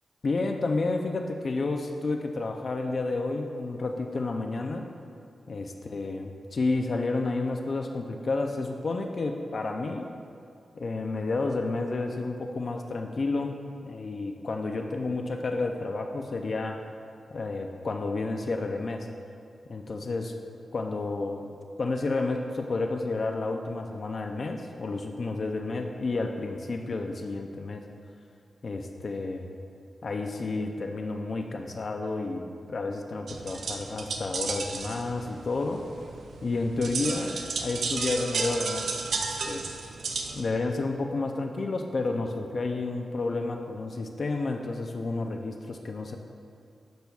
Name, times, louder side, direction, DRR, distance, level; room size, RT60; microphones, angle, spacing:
voice 1, 0.2-4.9 5.5-10.1 10.7-13.6 13.8-16.8 17.3-19.1 19.7-20.3 20.7-21.5 21.8-27.8 28.6-29.5 30.0-35.8 36.4-39.7 40.3-46.2, left 3 dB, 50° left, 4 dB, 0.5 m, -31 dB
sound 1, 33.3-40.4, right 4 dB, 85° right, 0.5 m, -33 dB
10.0 x 6.8 x 2.4 m, 2.4 s
wide cardioid pair, 110°, 0 cm